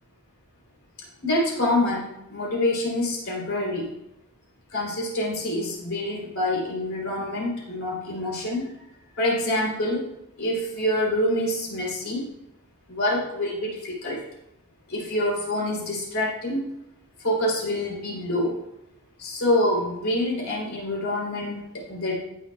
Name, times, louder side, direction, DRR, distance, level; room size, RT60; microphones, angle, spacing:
voice 1, 1.2-3.9 4.7-8.7 9.2-10.0 10.4-12.2 12.9-14.2 14.9-16.7 17.2-18.5 19.2-22.2, left 1 dB, 65° left, -3 dB, 3.3 m, -26 dB
17.0 x 6.4 x 2.3 m, 0.87 s
head